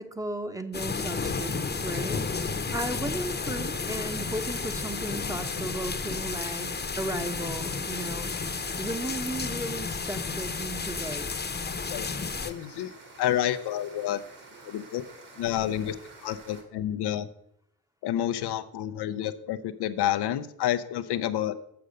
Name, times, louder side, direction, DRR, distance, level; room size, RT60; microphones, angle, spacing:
voice 1, 0.0-6.7 7.0-8.3 8.8-11.5, right 1 dB, 10° right, 8 dB, 1.0 m, -35 dB
sound 1, 0.7-12.5, left 4 dB, 25° left, 1.0 m, -32 dB
sound 2, 1.1-16.6, right 3 dB, 50° right, 2.6 m, -49 dB
voice 2, 12.4-12.9 13.2-14.2 14.6-15.0 15.4-15.9 16.2-17.3 18.0-21.5, left 11 dB, 75° left, 9 dB, 0.7 m, -29 dB
6.8 x 6.5 x 6.5 m, 0.72 s
supercardioid pair, 60°, 40 cm